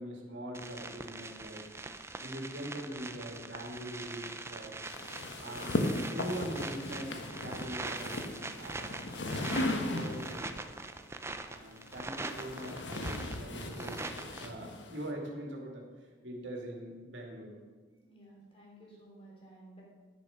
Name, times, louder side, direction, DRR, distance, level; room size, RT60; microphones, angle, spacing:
voice 1, 0.0-1.6 2.2-4.8 5.4-5.8 6.1-10.6 11.5-14.0 14.4-17.6, right 1 dB, 90° right, 0 dB, 2.4 m, -42 dB
sound 1, 0.5-14.5, right 3 dB, 15° right, 0.6 m, -43 dB
sound 2, 4.9-10.5 11.5-15.1, left 1 dB, 85° left, 1.2 m, -37 dB
voice 2, 18.0-19.8, right 1 dB, 30° left, -4 dB, 3.6 m, -54 dB
10.5 x 9.5 x 5.7 m, 1.4 s
head